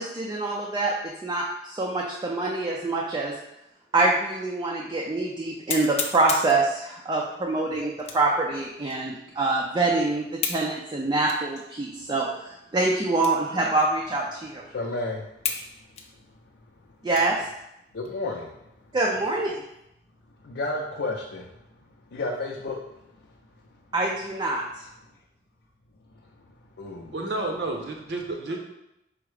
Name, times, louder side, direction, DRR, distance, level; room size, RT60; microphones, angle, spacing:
voice 1, 0.0-3.4 3.9-14.6 17.0-17.4 18.9-19.6 23.9-24.8, right 2 dB, 25° right, -2 dB, 0.4 m, -25 dB
sound 1, 4.3-4.4 4.9-5.0 5.7-6.6 8.0-8.4 8.9-9.0 10.4-10.7 11.3-11.4 12.1-12.2 13.2-13.5 13.8-13.9 14.6-14.7 15.4-15.7 16.0-17.4 17.9-18.1 18.6-19.0, left 5 dB, 35° left, 0.5 m, -32 dB
voice 2, 14.7-15.3 17.9-18.5 20.4-21.5 22.1-22.8 26.8-27.1, left 2 dB, 85° left, -2 dB, 0.5 m, -31 dB
voice 3, 27.1-28.6, right 2 dB, 70° right, 2 dB, 0.7 m, -30 dB
4.7 x 2.1 x 4.7 m, 0.84 s
head